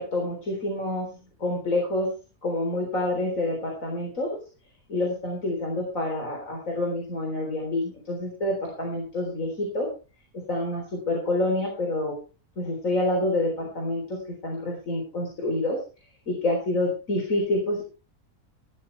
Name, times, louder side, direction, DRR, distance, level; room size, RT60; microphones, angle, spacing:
voice 1, 0.0-2.1 2.4-4.4 4.9-9.9 10.3-12.2 12.6-15.8 16.3-17.8, left 1 dB, 60° left, 1 dB, 4.3 m, -27 dB
17.5 x 12.5 x 3.4 m, 0.34 s
omnidirectional pair, 1.6 m